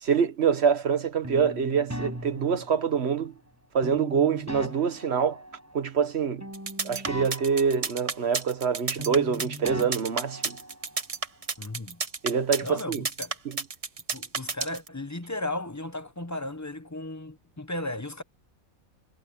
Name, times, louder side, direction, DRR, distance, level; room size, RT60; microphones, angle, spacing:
voice 1, 0.0-3.3 3.7-5.4 5.7-6.5 6.8-10.6 12.2-13.0, right 6 dB, 50° right, 1.5 m, -25 dB
sound 1, 1.2-3.2 3.8-6.1 6.4-8.7 9.0-11.0, equal, 10° right, 7.0 m, -40 dB
sound 2, 6.5-14.9, right 4 dB, 30° right, 0.9 m, -31 dB
voice 2, 11.6-12.0 12.6-13.4 14.1-18.2, left 1 dB, 15° left, 0.8 m, -35 dB
omnidirectional pair, 1.5 m